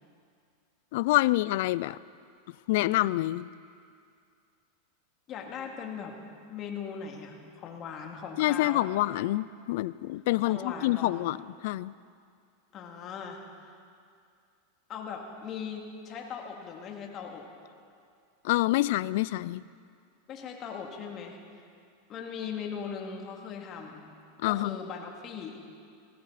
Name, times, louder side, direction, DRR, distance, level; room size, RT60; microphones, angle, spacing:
voice 1, 0.9-2.0 2.7-3.5 8.4-11.9 18.4-19.6 24.4-24.8, left 17 dB, 65° left, 20 dB, 0.3 m, -27 dB
voice 2, 5.3-6.2 6.5-8.9 10.4-11.2 12.7-13.4 14.9-17.5 20.3-21.4 22.1-24.1 24.4-25.6, left 6 dB, 40° left, 2 dB, 2.4 m, -39 dB
19.0 x 17.0 x 4.2 m, 2.3 s
hypercardioid pair, 115°, 0 cm